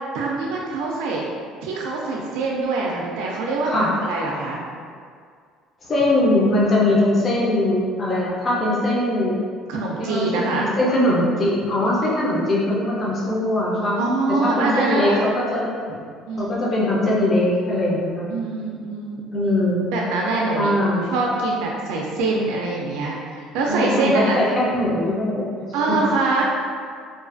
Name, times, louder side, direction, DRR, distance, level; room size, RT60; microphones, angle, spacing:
voice 1, 0.1-1.2 1.6-4.6 9.7-10.7 14.0-15.2 16.3-16.6 18.3-19.2 19.9-20.7 21.1-24.4 25.7-26.4, right 3 dB, 90° right, -2 dB, 0.3 m, -24 dB
voice 2, 5.9-9.4 10.0-14.0 14.3-15.7 16.4-18.3 19.3-19.9 20.5-21.1 23.7-25.5 25.9-26.0, left 1 dB, 30° left, -6 dB, 0.5 m, -21 dB
2.4 x 2.3 x 2.5 m, 2.1 s
cardioid pair, 135°, 0 cm